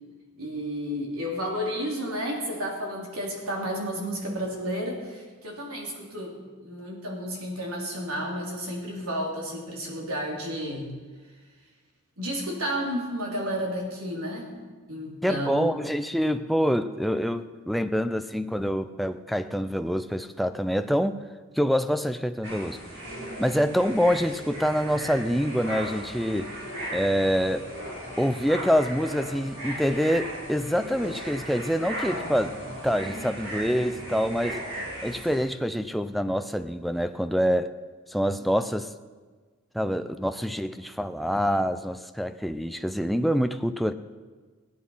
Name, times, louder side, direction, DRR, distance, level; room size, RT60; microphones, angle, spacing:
voice 1, 0.4-10.9 12.2-14.5 14.9-15.7, equal, 85° right, -1 dB, 3.4 m, -32 dB
voice 2, 15.2-21.2 21.6-22.8 23.4-26.5 26.9-27.6 28.2-32.5 32.8-34.6 35.0-37.7 38.1-38.9 39.7-43.9, equal, ahead, 9 dB, 0.4 m, -26 dB
sound 1, 22.4-35.4, right 1 dB, 55° right, 5.3 m, -37 dB
Bowed string instrument, 25.2-33.4, left 3 dB, 75° left, 1.4 m, -48 dB
16.0 x 10.5 x 5.6 m, 1.4 s
head